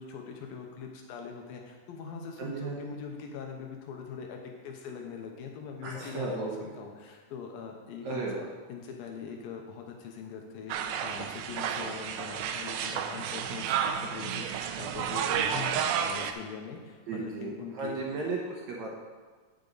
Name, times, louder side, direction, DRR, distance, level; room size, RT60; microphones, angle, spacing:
voice 1, 0.0-8.3 8.7-18.0, left 6 dB, 80° left, 2 dB, 2.6 m, -42 dB
voice 2, 2.4-3.0 5.8-6.8 8.0-8.5 17.1-18.9, right 3 dB, 65° right, -3 dB, 2.0 m, -35 dB
sound 1, 10.7-16.3, right 8 dB, 80° right, 1.8 m, -31 dB
9.2 x 8.8 x 4.0 m, 1.4 s
omnidirectional pair, 4.1 m